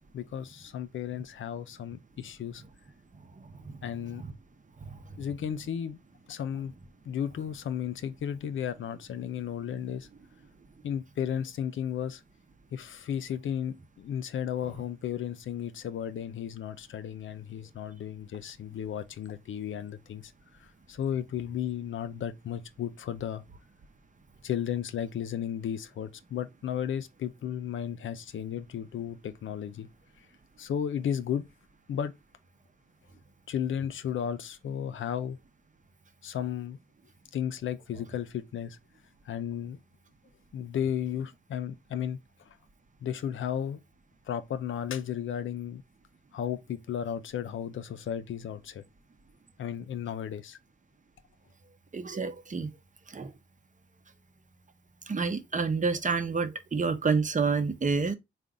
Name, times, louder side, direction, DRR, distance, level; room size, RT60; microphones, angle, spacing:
voice 1, 0.1-2.6 3.8-4.2 5.2-6.0 6.3-6.7 7.1-10.1 10.8-12.2 12.7-20.3 20.9-23.4 24.4-29.9 30.6-31.4 31.9-32.1 33.5-35.4 36.2-36.8 37.3-38.8 39.3-39.8 40.5-42.2 42.5-42.6 43.0-43.8 44.3-45.8 46.3-48.8 49.6-50.6, left 9 dB, 70° left, 0.5 m, -34 dB
voice 2, 51.9-52.7 53.1-53.3 55.1-58.1, right 4 dB, 35° right, 0.8 m, -28 dB
3.7 x 2.5 x 3.4 m
supercardioid pair, 40°, 21 cm